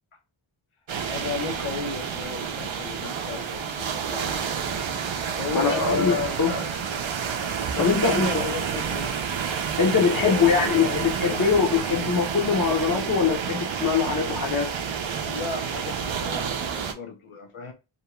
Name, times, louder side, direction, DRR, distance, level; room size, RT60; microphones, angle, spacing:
sound 1, 0.9-16.9, right 7 dB, 65° right, 0.5 m, -29 dB
voice 1, 1.1-4.4 5.4-6.7 7.7-9.2 10.1-11.0 15.3-17.7, left 4 dB, 75° left, 0.8 m, -33 dB
voice 2, 5.5-6.5 7.8-8.5 9.8-14.7, left 5 dB, 40° left, 0.7 m, -23 dB
2.6 x 2.2 x 2.9 m
wide cardioid pair, 65°, 50 cm